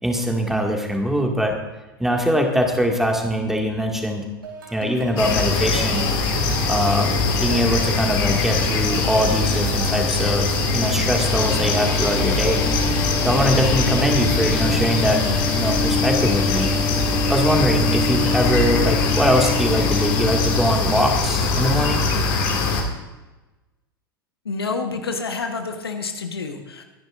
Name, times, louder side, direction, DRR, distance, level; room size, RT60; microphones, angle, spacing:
voice 1, 0.0-1.6 2.0-4.2 4.7-6.1 6.7-12.6 13.2-15.2 15.6-16.7 17.3-22.1, equal, 5° right, 1 dB, 2.1 m, -22 dB
sound 1, 4.4-16.7, right 4 dB, 70° right, 4.0 m, -37 dB
sound 2, 5.2-22.8, left 3 dB, 50° left, 2.4 m, -22 dB
sound 3, 11.2-20.6, left 3 dB, 30° left, 2.4 m, -28 dB
voice 2, 24.4-26.8, left 4 dB, 80° left, 6 dB, 1.3 m, -28 dB
24.5 x 10.5 x 2.6 m, 1.1 s
figure-of-eight pair, 85°, 13 cm